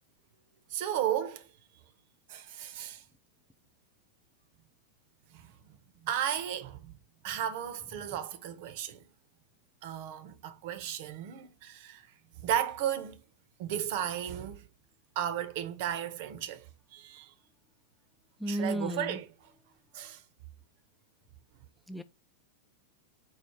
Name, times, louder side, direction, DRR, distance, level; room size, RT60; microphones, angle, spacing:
voice 1, 0.7-1.5 2.3-3.0 5.3-5.8 6.0-6.9 7.2-9.0 9.8-12.0 12.4-13.2 13.6-14.6 15.2-17.3 18.5-19.3 19.9-20.2, right 10 dB, 50° right, 0.6 m, -34 dB
voice 2, 18.4-19.2 21.9-22.0, equal, ahead, 0.3 m, -33 dB
4.8 x 2.4 x 4.5 m
figure-of-eight pair, 90°, 0 cm